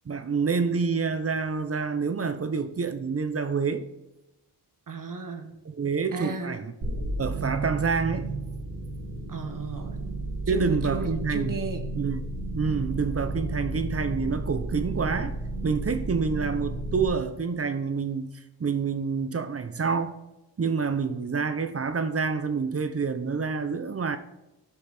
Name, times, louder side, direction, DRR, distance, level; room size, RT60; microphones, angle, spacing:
voice 1, 0.1-3.9 5.6-8.3 10.5-11.5 11.9-12.2 12.5-15.4 15.6-18.3 18.6-20.2 20.6-24.2, right 5 dB, 35° right, 0.9 m, -27 dB
voice 2, 4.9-5.6 6.1-6.6 9.3-10.0 10.5-11.9, right 4 dB, 50° right, 1.6 m, -34 dB
sound 1, 6.8-17.1, right 2 dB, 75° right, 2.1 m, -33 dB
13.0 x 5.7 x 4.4 m
cardioid pair, 55°, 41 cm